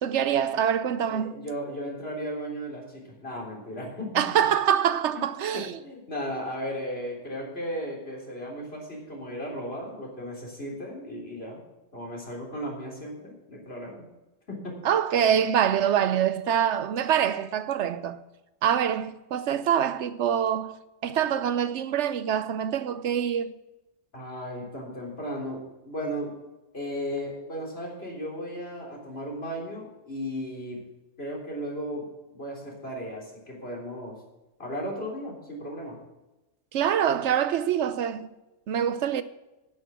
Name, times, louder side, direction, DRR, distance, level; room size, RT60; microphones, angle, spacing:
voice 1, 0.0-1.5 4.1-5.8 14.8-18.2 18.6-23.6 36.7-38.3 38.7-39.2, right 9 dB, 70° right, 0.9 m, -25 dB
voice 2, 1.1-4.3 5.1-11.6 11.9-14.1 14.5-14.9 15.1-15.2 24.1-26.4 26.7-30.9 31.2-34.2 34.6-36.0, equal, 55° left, 3.8 m, -35 dB
10.5 x 9.9 x 5.9 m
omnidirectional pair, 1.3 m